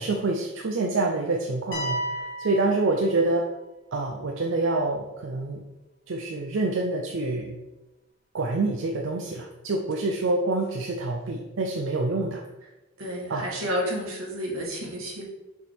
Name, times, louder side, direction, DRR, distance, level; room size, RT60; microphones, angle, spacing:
voice 1, 0.0-3.5 3.9-5.6 6.1-7.6 8.3-12.4 13.3-13.5, right 2 dB, 70° right, 2 dB, 0.5 m, -27 dB
sound 1, 1.7-3.6, right 1 dB, 60° left, 1.3 m, -33 dB
voice 2, 13.0-15.2, equal, 90° right, -2 dB, 1.8 m, -30 dB
6.3 x 3.5 x 4.5 m, 1.0 s
head